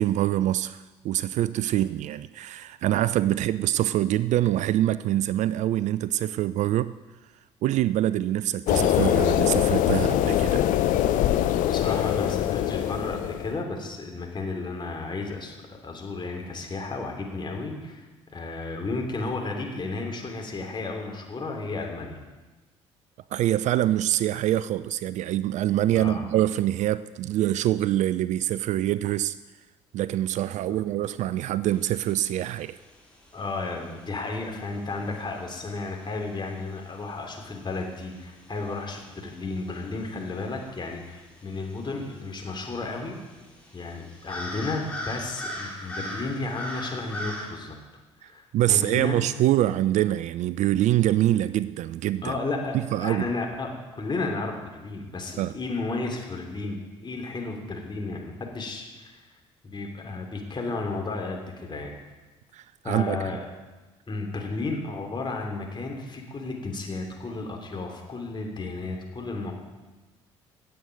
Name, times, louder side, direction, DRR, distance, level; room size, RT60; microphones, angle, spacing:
voice 1, 0.0-7.0 7.6-10.6 23.3-29.4 29.9-32.8 48.5-52.3 52.9-53.3 55.4-55.6 62.5-63.4, right 13 dB, 50° right, 16 dB, 0.4 m, -25 dB
sound 1, 8.7-13.5, left 11 dB, 55° left, 0.7 m, -23 dB
voice 2, 11.7-22.2 25.9-26.2 30.7-30.8 33.3-43.2 43.7-47.8 48.2-49.2 52.2-59.2 59.6-61.9 62.8-63.4 64.1-69.5, left 3 dB, 30° left, 1 dB, 3.1 m, -33 dB
sound 2, 31.7-47.5, equal, 10° left, 4.2 m, -42 dB
16.5 x 7.9 x 5.3 m, 1.2 s
figure-of-eight pair, 50°, 16 cm